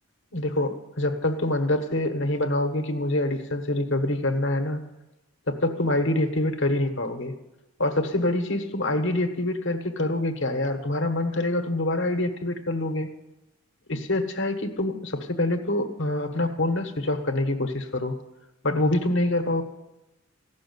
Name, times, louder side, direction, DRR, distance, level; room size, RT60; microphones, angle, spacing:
voice 1, 0.3-4.8 5.5-7.3 7.8-13.1 13.9-18.2 18.6-19.6, left 1 dB, 55° left, 6 dB, 1.3 m, -25 dB
16.0 x 6.3 x 9.5 m, 0.97 s
head